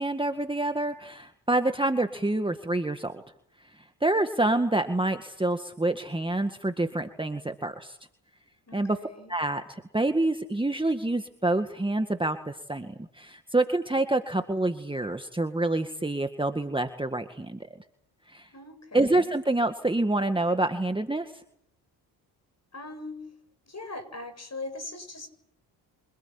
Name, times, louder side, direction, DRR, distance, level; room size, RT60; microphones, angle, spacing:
voice 1, 0.0-3.2 4.0-8.0 8.7-9.0 9.3-17.8 18.3-18.5 18.9-21.3, right 2 dB, 10° right, 7 dB, 1.9 m, -27 dB
voice 2, 8.7-9.3 18.5-19.3 22.7-23.2 23.7-25.3, left 2 dB, 30° left, 10 dB, 7.8 m, -40 dB
26.5 x 18.5 x 8.9 m, 0.70 s
hypercardioid pair, 50°, 50 cm